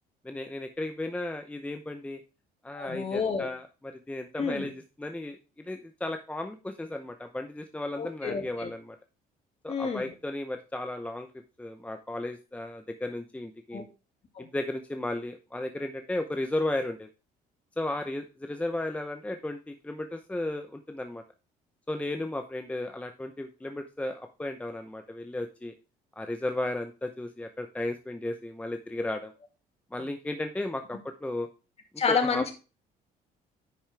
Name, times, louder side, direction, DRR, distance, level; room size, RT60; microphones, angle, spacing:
voice 1, 0.2-2.2 2.6-9.0 9.6-11.3 11.6-13.9 14.4-17.1 17.8-21.2 21.9-25.7 26.2-29.3 29.9-31.5 32.1-32.5, left 1 dB, 10° left, 6 dB, 0.7 m, -34 dB
voice 2, 2.7-3.5 4.4-4.7 8.0-8.7 9.7-10.1 13.7-13.8 14.3-14.5 32.0-32.5, left 5 dB, 35° left, 5 dB, 2.1 m, -29 dB
10.5 x 5.6 x 3.4 m, 0.32 s
cardioid pair, 110°, 17 cm